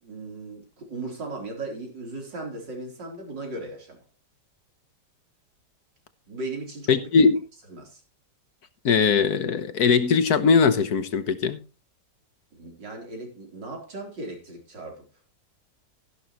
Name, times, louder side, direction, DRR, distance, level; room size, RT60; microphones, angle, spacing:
voice 1, 0.0-4.0 6.3-7.0 7.7-8.0 12.5-15.1, right 2 dB, 90° right, 4.4 m, -37 dB
voice 2, 6.9-7.4 8.8-11.6, left 5 dB, 65° left, 1.6 m, -20 dB
13.5 x 11.0 x 3.0 m
omnidirectional pair, 1.9 m